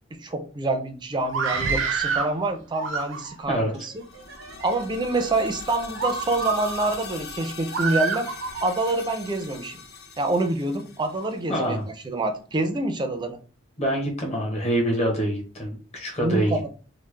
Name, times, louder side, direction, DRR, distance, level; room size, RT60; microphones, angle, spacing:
voice 1, 0.1-4.0 4.6-8.3 8.6-9.8 10.2-11.8 12.0-13.4 16.2-16.7, right 2 dB, 25° right, 0.4 m, -26 dB
Screaming, 1.2-2.3 2.7-3.5 4.2-4.7 5.3-5.4 5.9-6.9 7.7-8.7, right 5 dB, 75° right, 0.5 m, -28 dB
sound 1, 3.9-11.8, left 5 dB, 60° left, 0.5 m, -41 dB
voice 2, 11.5-11.8 13.8-16.7, equal, 35° left, 1.0 m, -25 dB
3.1 x 2.1 x 3.2 m
head